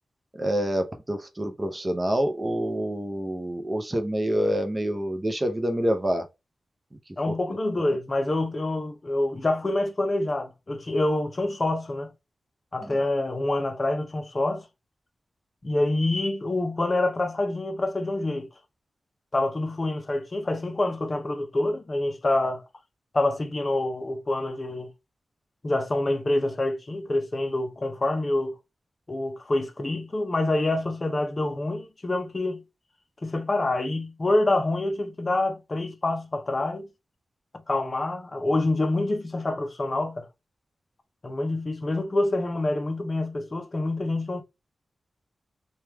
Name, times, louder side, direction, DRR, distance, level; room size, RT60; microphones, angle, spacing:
voice 1, 0.3-6.3 7.3-7.6 12.8-13.0, equal, 20° right, 0.5 m, -27 dB
voice 2, 7.2-12.1 12.7-14.6 15.6-18.5 19.3-22.6 23.1-24.9 25.6-28.5 29.1-32.6 33.2-36.9 37.7-40.3 41.2-44.4, left 2 dB, 30° left, 0.5 m, -26 dB
2.9 x 2.3 x 3.3 m
wide cardioid pair, 155°, 0 cm